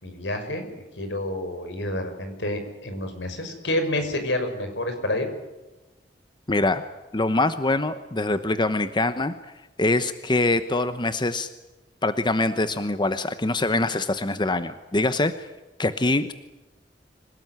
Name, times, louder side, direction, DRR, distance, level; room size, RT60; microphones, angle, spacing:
voice 1, 0.0-5.3, left 1 dB, 80° left, 7 dB, 5.8 m, -29 dB
voice 2, 6.5-6.8 7.1-9.3 9.8-11.5 12.0-15.5 15.8-16.3, left 2 dB, 25° left, 11 dB, 1.0 m, -24 dB
26.5 x 18.0 x 9.4 m, 1.1 s
head